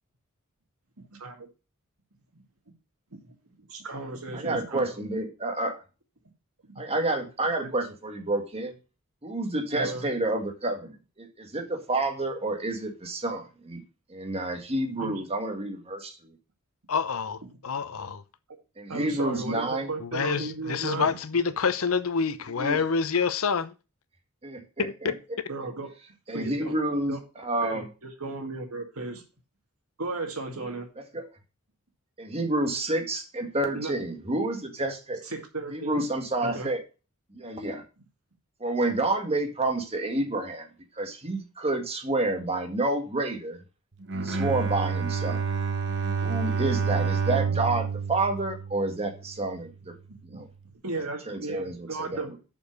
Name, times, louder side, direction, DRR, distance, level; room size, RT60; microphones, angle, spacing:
voice 1, 1.1-1.5 2.3-2.4 3.1-3.3 3.7-4.9 6.7-6.8 7.6-7.7 9.7-10.1 15.0-15.2 18.9-21.1 25.5-25.9 26.3-26.7 27.1-27.2 27.6-29.2 30.0-30.9 33.7-33.9 35.2-36.0 36.4-36.7 50.8-52.3, right 3 dB, 75° right, 2.1 m, -35 dB
voice 2, 4.3-5.8 6.8-8.7 9.2-13.8 14.1-16.2 18.8-19.9 22.6-22.8 24.4-25.1 26.3-27.9 31.0-31.2 32.2-35.2 35.7-36.8 37.3-37.8 38.6-40.7 41.0-43.6 44.1-45.4 46.2-49.9 50.2-50.5 51.3-52.3, right 2 dB, 25° right, 1.7 m, -29 dB
voice 3, 16.9-18.2 20.0-23.7 24.8-25.2, left 5 dB, 70° left, 0.7 m, -27 dB
Bowed string instrument, 44.0-49.3, right 5 dB, 55° right, 1.0 m, -28 dB
7.0 x 5.2 x 6.5 m
head